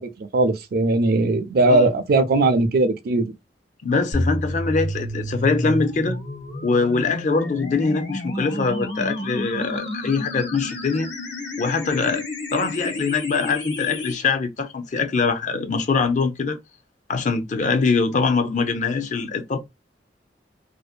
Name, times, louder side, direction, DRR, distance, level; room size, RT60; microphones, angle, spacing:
voice 1, 0.0-3.3, right 2 dB, 60° right, 0.5 m, -19 dB
voice 2, 3.8-6.2 6.6-11.1 11.6-12.2 12.5-16.6 17.1-19.6, left 4 dB, 45° left, 0.5 m, -23 dB
sound 1, 4.1-14.1, left 1 dB, 85° left, 1.1 m, -30 dB
2.7 x 2.0 x 2.3 m
head